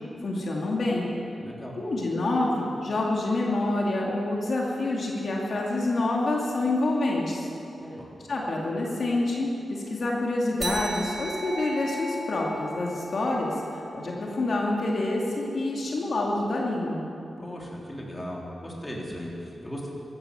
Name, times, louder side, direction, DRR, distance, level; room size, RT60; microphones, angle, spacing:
voice 1, 0.2-1.1 1.8-7.5 8.3-17.0, left 2 dB, 65° left, -2 dB, 2.3 m, -27 dB
voice 2, 1.4-1.7 7.8-8.1 17.4-19.9, equal, 15° left, -3 dB, 3.5 m, -37 dB
sound 1, 10.6-15.5, right 1 dB, 40° right, 3.6 m, -37 dB
15.0 x 13.5 x 6.8 m, 2.7 s
cardioid pair, 75°, 0 cm